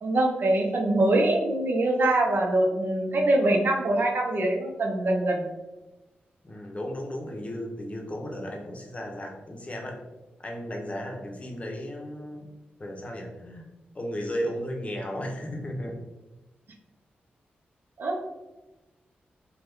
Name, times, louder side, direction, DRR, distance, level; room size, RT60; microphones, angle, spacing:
voice 1, 0.0-5.5 18.0-18.2, right 1 dB, 60° right, 1 dB, 0.6 m, -23 dB
voice 2, 6.4-10.0 10.4-12.4 12.8-13.6 13.9-15.9, equal, 35° left, 0 dB, 0.8 m, -34 dB
3.0 x 2.3 x 3.4 m, 1.1 s
cardioid pair, 55°, 4 cm